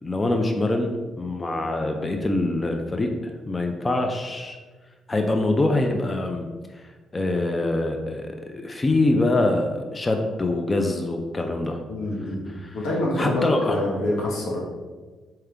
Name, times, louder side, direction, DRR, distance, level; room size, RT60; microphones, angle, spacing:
voice 1, 0.0-0.9 1.2-3.1 3.5-4.6 5.1-6.5 6.8-11.8 12.6-12.8 13.2-13.8, left 2 dB, 25° left, 4 dB, 0.4 m, -24 dB
voice 2, 11.9-14.6, left 1 dB, 85° left, -2 dB, 1.1 m, -26 dB
4.3 x 3.6 x 3.4 m, 1.4 s
cardioid pair, 90°, 0 cm